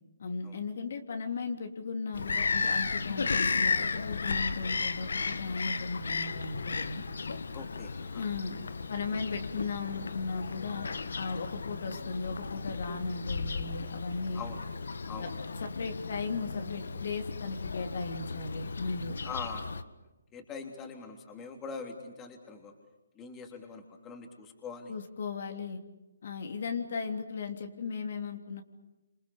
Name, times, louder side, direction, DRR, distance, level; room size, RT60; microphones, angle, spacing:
voice 1, 0.2-7.0 8.1-8.6 8.9-10.9 11.1-14.4 15.2-19.2 24.9-25.8 26.2-28.6, left 4 dB, 55° left, 5 dB, 3.3 m, -36 dB
Bird vocalization bird call bird song, 2.1-19.8, left 4 dB, 75° left, 1.7 m, -34 dB
voice 2, 7.5-8.2 14.3-14.6 15.1-15.3 19.2-19.7 20.3-22.7 23.1-24.9, left 5 dB, 15° left, 4 dB, 3.3 m, -43 dB
27.5 x 27.5 x 7.1 m, 1.0 s
hypercardioid pair, 155°, 0 cm